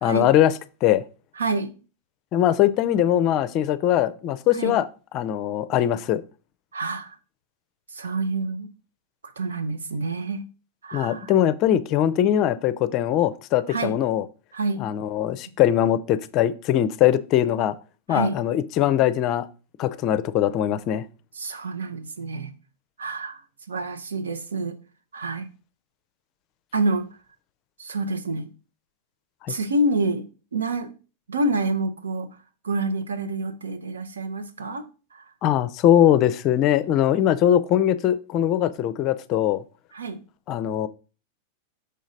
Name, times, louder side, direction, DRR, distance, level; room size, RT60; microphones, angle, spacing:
voice 1, 0.0-0.5 0.8-1.0 2.3-4.9 5.1-6.2 10.9-14.2 14.8-17.7 18.1-19.5 19.8-21.0 29.4-29.5 35.4-39.6 40.5-40.9, left 11 dB, 40° left, 0.5 m, -21 dB
voice 2, 1.4-1.7 4.5-4.7 6.7-7.2 7.9-8.7 9.2-10.4 10.8-11.3 13.7-13.9 14.5-14.9 18.1-18.4 21.4-22.5 23.0-23.4 23.7-24.8 25.1-25.5 26.7-27.1 27.8-28.5 29.5-30.3 30.5-30.9 31.3-32.3 32.6-34.8 35.1-35.3 39.9-40.2, right 2 dB, 70° right, 0.9 m, -27 dB
6.7 x 5.1 x 3.8 m
figure-of-eight pair, 90°, 0 cm